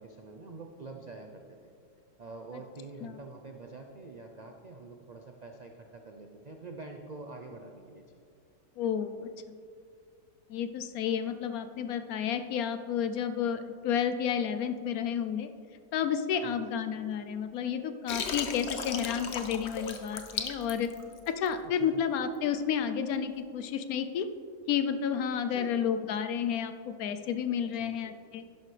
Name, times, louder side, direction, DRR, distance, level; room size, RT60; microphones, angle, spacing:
voice 1, 0.0-1.7 2.2-8.1 16.4-16.6 21.9-22.0 25.5-25.7 27.8-28.1, right 3 dB, 65° right, 3 dB, 0.4 m, -46 dB
voice 2, 8.8-9.3 10.5-15.5 15.9-20.9 21.3-24.3 24.7-28.4, left 8 dB, 75° left, 10 dB, 1.0 m, -31 dB
Water, 18.1-21.5, left 5 dB, 55° left, 1.0 m, -36 dB
11.5 x 11.0 x 3.3 m, 2.3 s
omnidirectional pair, 1.6 m